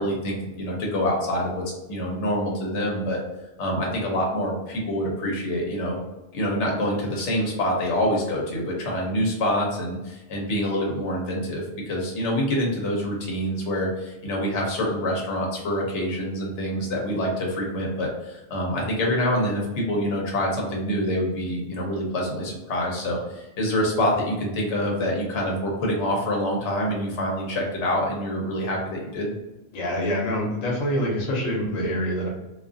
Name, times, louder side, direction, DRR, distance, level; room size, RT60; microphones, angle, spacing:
voice 1, 0.0-3.2 3.6-6.0 6.3-29.3, equal, 65° left, -1 dB, 1.0 m, -26 dB
voice 2, 29.7-32.3, equal, 90° left, -1 dB, 1.1 m, -25 dB
2.5 x 2.4 x 2.5 m, 1.0 s
omnidirectional pair, 1.3 m